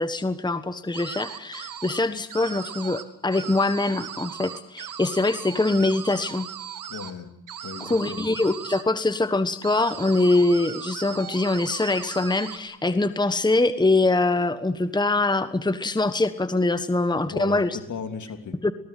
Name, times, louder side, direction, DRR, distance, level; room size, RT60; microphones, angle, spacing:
voice 1, 0.0-6.5 7.8-17.8 18.6-18.7, left 2 dB, 15° left, 11 dB, 1.3 m, -23 dB
sound 1, 0.9-2.0 2.3-3.0 3.3-7.1 7.5-8.8 9.6-12.6, right 9 dB, 70° right, 2.4 m, -38 dB
voice 2, 6.9-7.3 7.6-8.3 17.3-18.6, left 6 dB, 60° left, 7 dB, 3.2 m, -35 dB
20.5 x 18.5 x 10.0 m, 0.83 s
cardioid pair, 70°, 33 cm